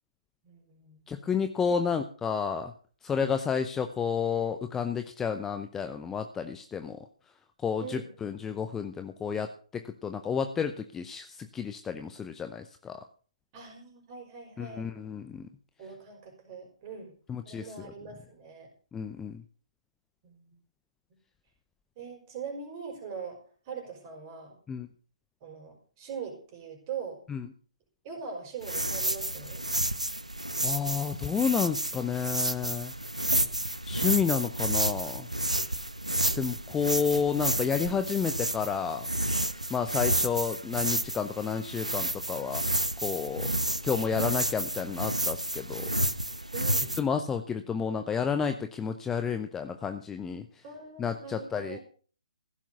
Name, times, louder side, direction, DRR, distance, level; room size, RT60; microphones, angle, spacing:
voice 1, 0.4-1.0 1.7-1.8 7.8-8.1 13.5-14.9 15.8-17.1 17.4-18.7 20.2-20.6 22.0-23.4 23.7-24.6 25.4-27.2 28.0-29.7 46.5-47.0 50.6-51.8, right 6 dB, 25° right, 3 dB, 5.5 m, -42 dB
voice 2, 1.1-2.7 3.0-7.0 7.6-9.5 9.7-13.0 14.6-15.5 17.3-17.6 18.9-19.4 24.7-24.9 27.3-27.5 30.6-32.9 33.8-35.3 36.3-39.1 39.7-42.6 43.0-43.5 43.8-45.9 47.0-50.4 51.0-51.8, left 6 dB, 10° left, 7 dB, 0.7 m, -31 dB
sound 1, 28.6-47.0, right 1 dB, 85° right, 1.1 m, -30 dB
15.5 x 7.4 x 6.9 m, 0.43 s
figure-of-eight pair, 135°, 4 cm